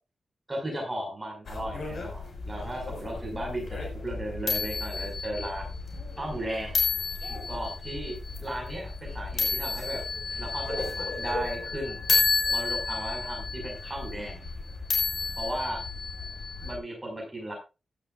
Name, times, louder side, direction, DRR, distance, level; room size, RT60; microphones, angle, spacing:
voice 1, 0.5-5.7 6.2-6.8 7.3-10.0 10.4-12.0 12.5-14.4 15.4-15.8 16.6-17.5, right 1 dB, 15° right, -1 dB, 5.7 m, -35 dB
sound 1, 1.5-16.8, left 4 dB, 60° left, 5.5 m, -31 dB
15.5 x 12.0 x 2.5 m, 0.29 s
wide cardioid pair, 130°, 0 cm